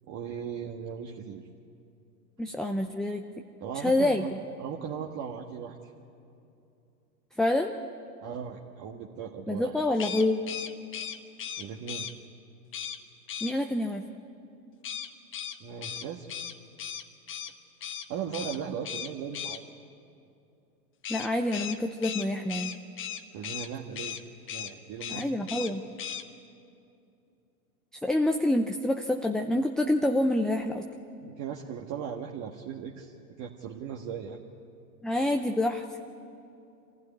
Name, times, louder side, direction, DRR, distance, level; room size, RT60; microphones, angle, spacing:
voice 1, 0.1-1.4 3.6-4.3 4.6-5.8 8.2-9.8 11.6-12.1 15.6-16.3 18.1-19.6 23.3-24.2 24.5-25.3 31.2-34.4, right 8 dB, 40° right, 0 dB, 1.6 m, -38 dB
voice 2, 2.4-3.2 3.7-4.2 7.4-7.7 9.5-10.4 13.4-14.0 21.1-22.7 25.1-25.8 28.0-30.9 35.0-35.8, left 1 dB, ahead, 4 dB, 0.4 m, -27 dB
sound 1, 9.9-12.1 12.7-13.0 13.3-13.5 14.8-17.5 17.8-18.1 18.3-18.6 18.8-19.6 21.0-23.7 23.9-24.2 24.5-24.7 25.0-25.7 26.0-26.2, left 8 dB, 25° left, 1.2 m, -37 dB
25.0 x 15.5 x 9.7 m, 2.6 s
hypercardioid pair, 105°, 47 cm